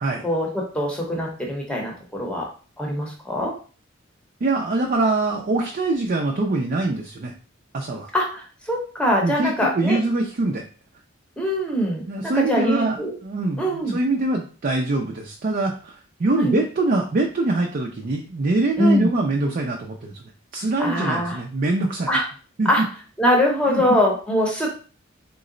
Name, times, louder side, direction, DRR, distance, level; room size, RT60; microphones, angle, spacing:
voice 1, 0.2-2.5 2.8-3.5 8.1-10.0 11.4-13.1 13.6-14.0 16.4-16.5 18.8-19.1 20.8-21.4 22.1-22.2 22.6-22.8 23.2-24.7, equal, 5° left, -1 dB, 0.8 m, -22 dB
voice 2, 4.4-7.3 7.7-8.1 9.2-10.6 12.1-13.0 13.2-20.2 20.5-22.1 22.6-22.8 23.7-23.8, right 2 dB, 45° right, 1 dB, 0.4 m, -23 dB
3.8 x 2.1 x 3.7 m, 0.39 s
head